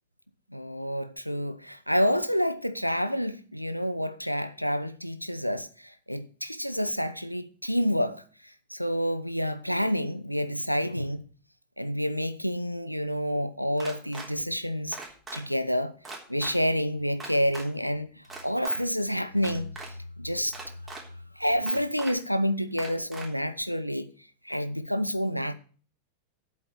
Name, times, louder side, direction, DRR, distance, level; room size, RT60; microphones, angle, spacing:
voice 1, 0.5-8.2 8.7-11.2 11.8-15.0 15.3-15.9 16.3-18.1 18.4-19.7 20.2-20.6 21.4-24.1 24.4-25.5, equal, 90° left, 0.8 m, -28 dB
sound 1, 13.8-14.3 14.9-15.4 16.0-16.5 17.2-17.6 18.2-18.8 19.4-19.9 20.5-21.0 21.7-22.1 22.8-23.3, right 3 dB, 15° right, 3.4 m, -40 dB
8.4 x 7.5 x 8.1 m
figure-of-eight pair, 90°, 0 cm